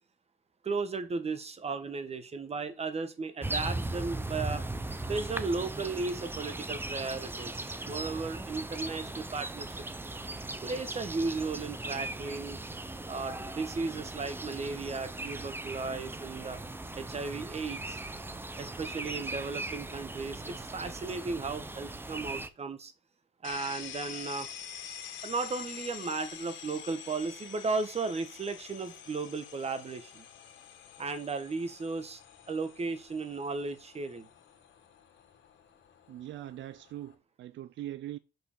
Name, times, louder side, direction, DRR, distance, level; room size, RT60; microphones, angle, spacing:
voice 1, 0.6-4.6 5.0-9.8 10.6-12.6 13.1-16.6 17.0-18.0 18.6-22.9 23.4-24.5 25.2-30.2 31.0-32.2 32.5-34.3, right 4 dB, 35° right, 1.3 m, -35 dB
sound 1, 3.4-22.5, right 2 dB, 10° right, 0.7 m, -38 dB
sound 2, 23.4-37.1, left 8 dB, 85° left, 2.1 m, -47 dB
voice 2, 36.1-38.2, right 13 dB, 75° right, 0.5 m, -41 dB
6.1 x 5.4 x 6.7 m
cardioid pair, 125°, 19 cm